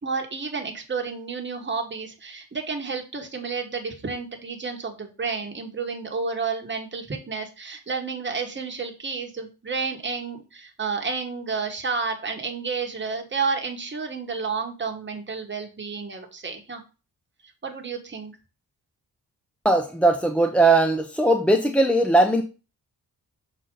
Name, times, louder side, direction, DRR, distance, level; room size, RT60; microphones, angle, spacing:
voice 1, 0.0-16.8 17.6-18.3, right 5 dB, 30° right, 2 dB, 1.3 m, -31 dB
voice 2, 19.6-22.4, right 2 dB, 5° left, 4 dB, 0.4 m, -19 dB
6.5 x 4.2 x 3.8 m, 0.32 s
wide cardioid pair, 145°, 38 cm